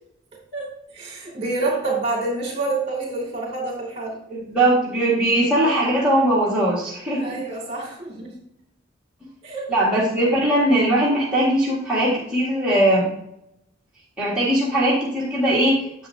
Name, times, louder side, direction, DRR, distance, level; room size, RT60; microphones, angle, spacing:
voice 1, 0.5-4.2 7.1-8.4 9.4-9.7, right 3 dB, 30° right, -2 dB, 3.1 m, -28 dB
voice 2, 4.3-7.4 9.7-13.1 14.2-15.8, right 1 dB, 5° right, -9 dB, 1.8 m, -20 dB
9.8 x 7.6 x 2.8 m, 0.77 s
head